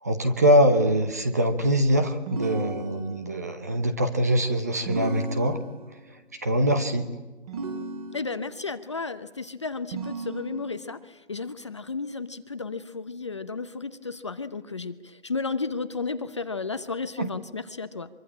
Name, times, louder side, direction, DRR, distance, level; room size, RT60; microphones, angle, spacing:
voice 1, 0.0-5.6 6.4-7.1 17.2-17.3, equal, 15° right, 8 dB, 0.8 m, -23 dB
sound 1, 2.3-3.4 4.9-6.0 7.5-8.5 9.9-10.9, right 3 dB, 30° right, 4.2 m, -35 dB
voice 2, 8.1-18.1, left 4 dB, 25° left, 11 dB, 0.8 m, -33 dB
24.5 x 23.5 x 8.7 m, 1.2 s
figure-of-eight pair, 165°, 34 cm